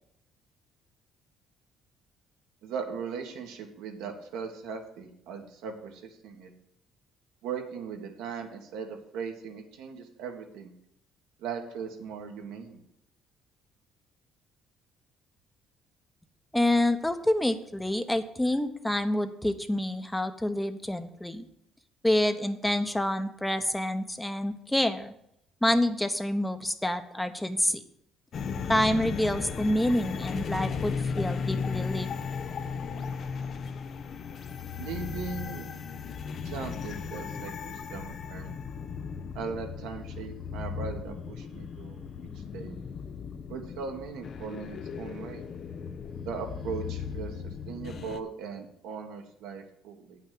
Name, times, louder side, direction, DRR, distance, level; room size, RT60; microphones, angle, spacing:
voice 1, 2.6-6.5 7.4-10.7 11.4-12.8 34.8-35.7 36.4-38.5 39.3-42.0 42.3-42.8 43.5-45.4 46.3-50.2, right 6 dB, 85° right, 3 dB, 1.6 m, -39 dB
voice 2, 16.5-21.4 22.0-25.1 25.6-27.8 28.7-32.1, left 1 dB, 10° left, 9 dB, 0.9 m, -27 dB
sound 1, 28.3-48.2, left 6 dB, 55° left, 0.8 m, -36 dB
8.7 x 5.9 x 7.6 m, 0.76 s
supercardioid pair, 75°, 0 cm